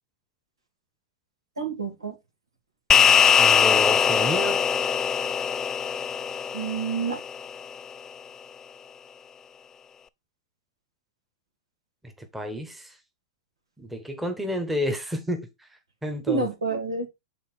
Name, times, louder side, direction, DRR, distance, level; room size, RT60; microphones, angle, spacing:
voice 1, 1.6-2.2 6.5-7.2 16.3-17.1, right 4 dB, 85° right, 2.2 m, -28 dB
sound 1, 2.9-7.6, left 7 dB, 20° left, 0.3 m, -21 dB
voice 2, 3.4-4.6 12.0-13.0 13.8-16.5, left 1 dB, 5° right, 1.2 m, -30 dB
6.9 x 3.8 x 4.3 m
hypercardioid pair, 110°, 3 cm